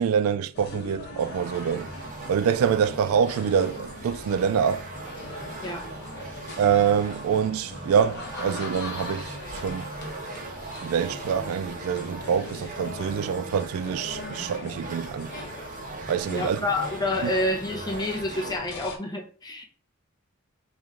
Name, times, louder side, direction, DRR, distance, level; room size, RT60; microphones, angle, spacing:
voice 1, 0.0-1.9 2.3-4.8 6.6-9.9 10.8-15.3 16.1-16.6 17.2-17.3, right 7 dB, 75° right, 0.3 m, -25 dB
sound 1, 0.5-19.0, left 2 dB, 55° left, 0.9 m, -40 dB
sound 2, 1.2-18.6, right 3 dB, 40° right, 0.6 m, -40 dB
voice 2, 5.6-5.9 16.3-19.6, left 2 dB, 20° left, 0.7 m, -28 dB
3.2 x 3.0 x 3.7 m
head